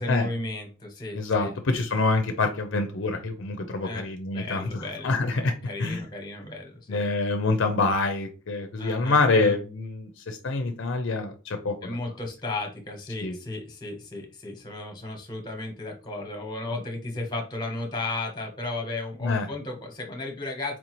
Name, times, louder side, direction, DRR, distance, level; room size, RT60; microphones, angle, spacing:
voice 1, 0.0-1.5 3.8-4.1 4.3-5.1 5.4-7.0 8.8-9.5 11.8-20.8, left 2 dB, 20° left, 2 dB, 1.0 m, -34 dB
voice 2, 1.1-6.0 6.9-12.0 13.2-13.4 19.2-19.5, left 3 dB, 60° left, 6 dB, 0.5 m, -26 dB
4.5 x 2.7 x 3.0 m, 0.34 s
head